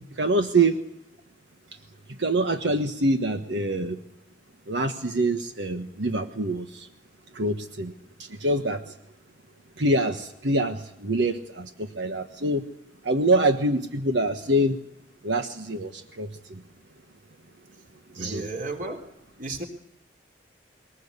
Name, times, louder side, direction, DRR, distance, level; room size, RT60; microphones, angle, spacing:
voice 1, 0.2-0.8 2.2-4.0 4.7-6.9 7.3-7.9 8.2-8.8 9.8-12.6 13.0-14.8 15.2-16.3 18.1-18.5, right 1 dB, 80° right, 6 dB, 1.4 m, -25 dB
voice 2, 18.1-19.0 19.4-19.6, right 2 dB, 45° right, 3 dB, 3.5 m, -33 dB
22.5 x 20.0 x 8.2 m, 0.81 s
head